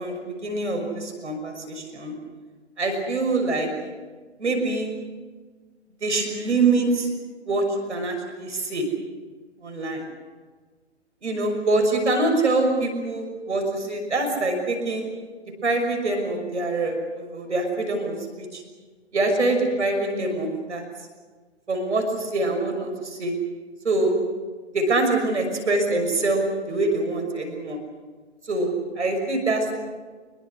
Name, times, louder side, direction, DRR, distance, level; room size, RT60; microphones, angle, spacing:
voice 1, 0.0-2.2 2.8-3.7 4.4-4.9 6.0-7.1 7.5-8.9 9.6-10.0 11.2-15.1 15.6-18.6 19.1-20.8 21.7-23.3 23.8-24.2 24.7-26.4 26.7-27.8 28.5-29.7, right 2 dB, 70° right, 3 dB, 6.2 m, -24 dB
26.0 x 23.0 x 6.5 m, 1.4 s
figure-of-eight pair, 125°, 36 cm